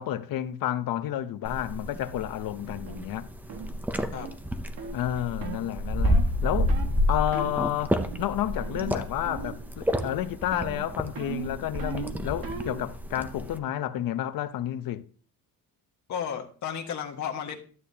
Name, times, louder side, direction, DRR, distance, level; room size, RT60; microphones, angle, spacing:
voice 1, 0.0-3.3 4.9-6.8 7.1-15.0, left 12 dB, 65° left, 0.7 m, -30 dB
sound 1, 1.4-13.6, equal, 5° right, 0.5 m, -30 dB
sound 2, 2.9-3.0 3.5-3.7 4.1-4.3 4.8-5.0 5.4-5.6 6.0-6.3 6.7-6.9 7.3-7.6 8.0-8.3 8.6-9.0 9.2-9.6 9.9-10.2 10.5-12.8, right 7 dB, 70° right, 1.8 m, -38 dB
voice 2, 16.1-17.6, left 8 dB, 50° left, 1.6 m, -33 dB
12.5 x 8.3 x 2.8 m
cardioid pair, 180°, 36 cm